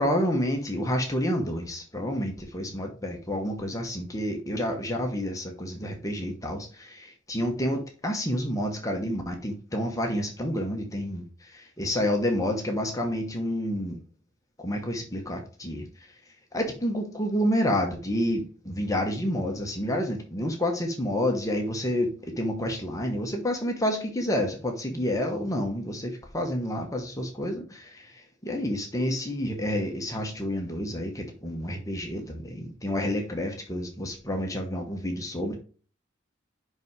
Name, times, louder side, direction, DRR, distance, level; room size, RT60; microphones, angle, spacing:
voice 1, 0.0-14.0 14.6-15.9 16.5-35.6, equal, 15° left, 1.1 m, -29 dB
5.5 x 5.2 x 4.7 m
head